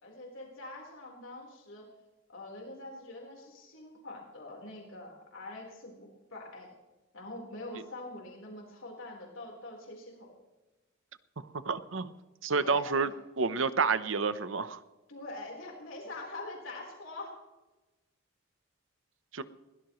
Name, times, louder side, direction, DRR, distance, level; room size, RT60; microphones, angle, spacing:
voice 1, 0.0-1.8 2.3-6.7 7.1-10.4 12.5-13.1 15.1-17.4, left 2 dB, 85° left, -1 dB, 4.2 m, -44 dB
voice 2, 11.6-12.1 12.4-13.1 13.4-14.8 19.3-19.4, right 4 dB, 75° right, 13 dB, 0.9 m, -29 dB
22.0 x 17.0 x 3.2 m, 1.1 s
head